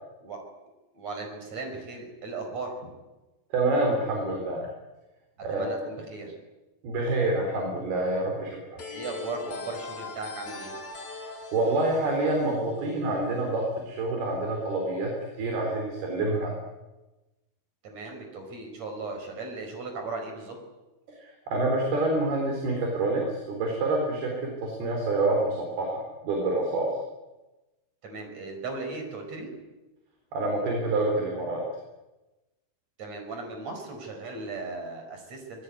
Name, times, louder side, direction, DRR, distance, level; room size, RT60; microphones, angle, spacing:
voice 1, 0.9-2.9 5.5-6.3 8.9-10.7 17.8-20.6 28.0-29.6 33.0-35.6, right 3 dB, 45° right, 4 dB, 6.3 m, -37 dB
voice 2, 3.5-4.7 5.4-5.7 6.8-8.8 11.5-15.1 15.4-16.5 21.2-26.9 30.3-31.6, right 2 dB, 80° right, 1 dB, 5.9 m, -27 dB
sound 1, 8.8-13.4, left 4 dB, 45° left, 3.6 m, -41 dB
26.0 x 19.5 x 9.7 m, 1.1 s
omnidirectional pair, 4.4 m